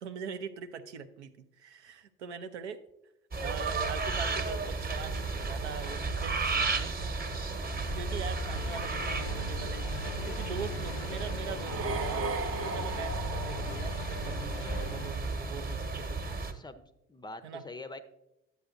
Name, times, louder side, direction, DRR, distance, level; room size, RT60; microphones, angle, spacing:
voice 1, 0.0-2.8 3.4-6.9 7.6-7.7 8.0-12.3 12.6-16.3 17.4-17.6, right 6 dB, 75° right, 9 dB, 0.6 m, -42 dB
sound 1, 3.3-16.5, right 3 dB, 25° right, 1.0 m, -34 dB
sound 2, 7.8-15.1, left 8 dB, 70° left, 0.5 m, -42 dB
sound 3, 11.5-14.5, right 4 dB, 45° right, 0.8 m, -36 dB
voice 2, 16.4-18.0, left 2 dB, 15° left, 11 dB, 0.5 m, -45 dB
11.0 x 8.1 x 2.5 m, 0.87 s
figure-of-eight pair, 55°, 34 cm